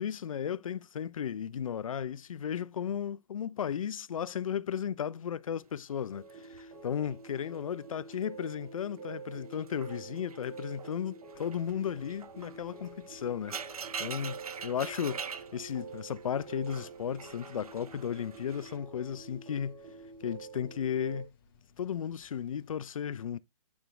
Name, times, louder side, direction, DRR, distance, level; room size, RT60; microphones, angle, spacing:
voice 1, 0.0-13.6 14.0-19.8 20.2-21.3 21.8-23.4, left 8 dB, 65° left, 0.4 m, -35 dB
sound 1, 5.9-8.3 8.6-9.0 9.4-18.8, right 6 dB, 75° right, 0.4 m, -45 dB
sound 2, 6.1-21.2, right 5 dB, 30° right, 1.4 m, -47 dB
sound 3, 11.3-22.7, left 6 dB, 35° left, 1.2 m, -64 dB
9.4 x 3.6 x 3.0 m
figure-of-eight pair, 125°, 19 cm